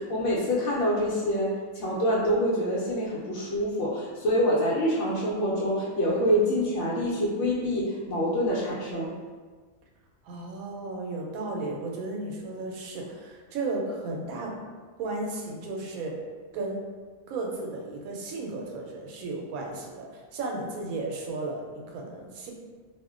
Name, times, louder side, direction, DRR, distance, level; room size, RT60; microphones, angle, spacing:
voice 1, 0.0-9.1, equal, 65° left, -7 dB, 0.9 m, -26 dB
voice 2, 10.2-14.6 15.0-16.2 16.5-16.8 17.3-22.5, right 2 dB, 80° right, -1 dB, 1.0 m, -34 dB
2.4 x 2.1 x 3.6 m, 1.5 s
omnidirectional pair, 1.5 m